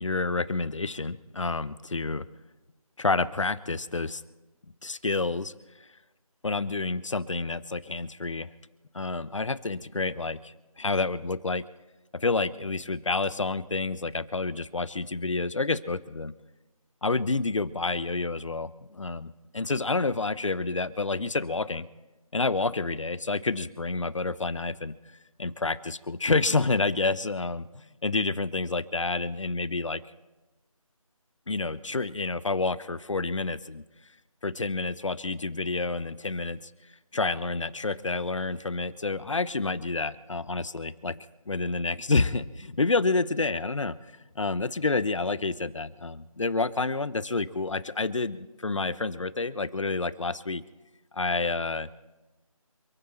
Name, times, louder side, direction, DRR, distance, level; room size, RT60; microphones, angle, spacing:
voice 1, 0.0-2.2 3.0-4.2 4.8-5.5 6.4-8.5 8.9-11.6 12.1-16.3 17.0-21.8 22.3-24.9 25.4-30.0 31.5-33.8 34.4-36.7 37.1-44.0 44.4-50.6 51.1-51.9, left 3 dB, 60° left, 16 dB, 0.9 m, -29 dB
27.5 x 9.5 x 4.3 m, 1.1 s
figure-of-eight pair, 165°, 18 cm